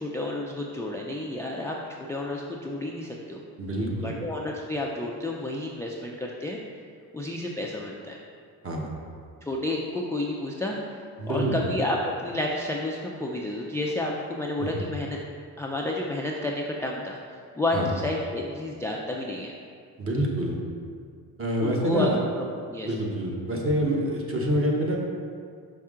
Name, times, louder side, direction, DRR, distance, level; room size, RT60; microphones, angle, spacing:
voice 1, 0.0-1.8 2.1-3.4 3.9-6.6 7.1-8.2 9.4-15.2 15.6-17.2 17.5-19.5 21.6-22.1 22.4-22.9, left 2 dB, 5° left, -2 dB, 0.3 m, -30 dB
voice 2, 3.6-4.2 8.6-8.9 11.2-11.6 14.6-14.9 17.7-17.9 20.0-20.6 21.4-22.2 22.8-25.0, equal, 35° right, -1 dB, 1.1 m, -26 dB
5.7 x 5.4 x 3.7 m, 2.2 s
cardioid pair, 115°, 40 cm